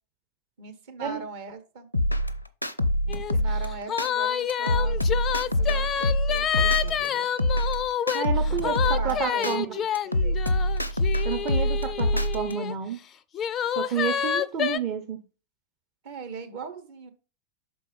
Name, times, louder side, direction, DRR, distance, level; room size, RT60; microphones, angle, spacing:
voice 1, 0.6-1.9 3.0-7.3 8.5-10.4 16.0-17.1, right 4 dB, 55° right, 1.3 m, -40 dB
sound 1, 1.9-4.1 4.5-7.1 7.4-9.5 9.9-12.5, left 1 dB, 85° left, 0.5 m, -25 dB
sound 2, 3.1-3.3 3.6-12.7 13.3-14.8, left 9 dB, 30° left, 0.3 m, -28 dB
voice 2, 8.1-8.8 9.0-9.6 11.2-13.0 13.8-15.2, right 7 dB, 35° right, 0.8 m, -30 dB
6.0 x 4.6 x 5.3 m
figure-of-eight pair, 90°, 0 cm